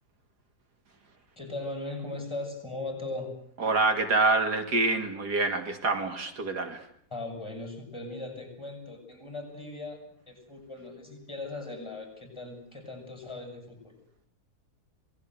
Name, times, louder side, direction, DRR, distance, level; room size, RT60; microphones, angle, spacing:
voice 1, 1.4-3.3 7.1-10.0 10.3-13.9, left 2 dB, 15° left, 4 dB, 7.7 m, -38 dB
voice 2, 3.6-6.8, right 3 dB, 85° right, 7 dB, 3.0 m, -26 dB
27.0 x 20.0 x 8.1 m, 0.65 s
omnidirectional pair, 1.7 m